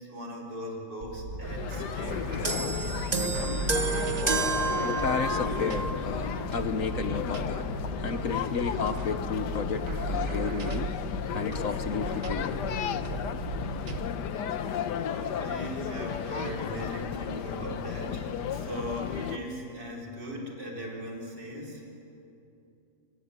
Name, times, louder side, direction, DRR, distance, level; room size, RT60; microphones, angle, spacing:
voice 1, 0.0-2.7 15.1-21.8, equal, 75° right, -1 dB, 4.9 m, -39 dB
sound 1, 1.0-14.1, right 3 dB, 50° right, 1.9 m, -37 dB
sound 2, 1.4-19.4, left 8 dB, 75° left, 1.5 m, -34 dB
sound 3, 2.4-6.0 6.9-7.1, right 4 dB, 25° right, 1.2 m, -30 dB
voice 2, 4.8-7.7 8.0-10.9 11.3-12.6, left 5 dB, 55° left, 9 dB, 1.2 m, -32 dB
26.0 x 22.0 x 9.9 m, 2.8 s
omnidirectional pair, 1.9 m